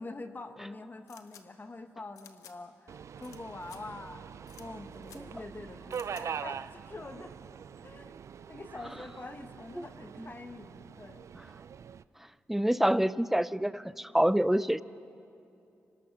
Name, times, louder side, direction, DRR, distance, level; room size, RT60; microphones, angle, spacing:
voice 1, 0.0-7.3 7.8-8.1 8.5-11.3, left 2 dB, 35° left, 8 dB, 1.3 m, -45 dB
sound 1, 1.1-1.4 2.2-2.5 3.2-3.4 3.6-3.8 4.5-4.6 5.0-5.2 5.9-6.2, left 8 dB, 90° left, 1.1 m, -53 dB
Subway metro underground, 2.9-12.0, right 7 dB, 65° right, 0.4 m, -43 dB
voice 2, 12.5-14.8, equal, 5° right, 18 dB, 0.5 m, -26 dB
25.0 x 18.5 x 6.1 m, 2.7 s
cardioid pair, 55°, 5 cm